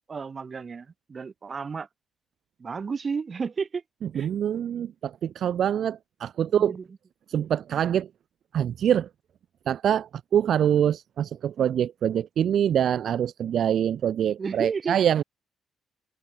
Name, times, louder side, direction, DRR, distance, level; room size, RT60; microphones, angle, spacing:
voice 1, 0.1-1.9 2.6-3.8 4.1-4.3 6.5-6.9 14.4-15.0, right 5 dB, 40° right, 3.7 m, -32 dB
voice 2, 4.2-6.7 7.3-8.1 8.5-9.1 9.7-15.2, right 9 dB, 65° right, 0.8 m, -25 dB
cardioid pair, 90°, 0 cm